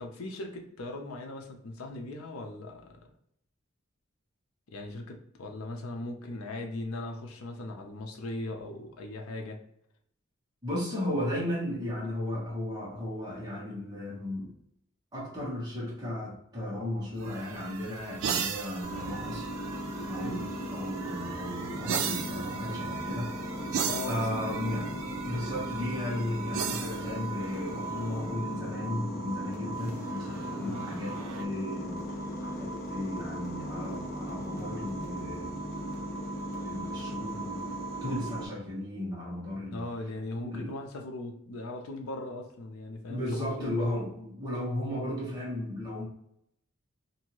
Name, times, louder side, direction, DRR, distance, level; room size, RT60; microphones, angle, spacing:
voice 1, 0.0-3.1 4.7-9.6 20.2-20.5 23.8-24.8 30.6-30.9 39.7-43.9, left 2 dB, 80° left, 3 dB, 0.6 m, -39 dB
voice 2, 10.6-14.5 15.1-19.5 20.1-23.3 24.0-24.9 25.2-32.0 32.4-35.6 36.6-37.7 38.0-39.9 40.5-40.7 43.1-46.0, left 1 dB, 20° right, -6 dB, 1.0 m, -35 dB
sound 1, 17.1-28.3 29.9-31.5, right 7 dB, 75° right, 0.3 m, -38 dB
sound 2, 18.8-38.5, right 1 dB, 45° left, 0.7 m, -37 dB
2.7 x 2.6 x 2.9 m, 0.75 s
head